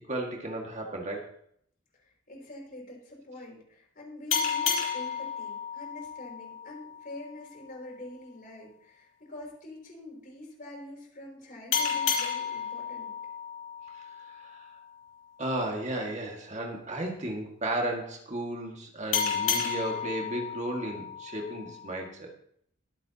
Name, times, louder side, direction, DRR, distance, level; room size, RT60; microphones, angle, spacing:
voice 1, 0.1-1.4 13.9-14.7 15.4-22.3, right 1 dB, 35° right, 1 dB, 1.9 m, -34 dB
voice 2, 2.0-13.2, left 1 dB, 45° left, -2 dB, 5.8 m, -45 dB
sound 1, 4.3-7.5 11.7-14.9 19.1-22.1, left 7 dB, 80° left, 2.9 m, -32 dB
22.5 x 8.9 x 2.9 m, 0.67 s
head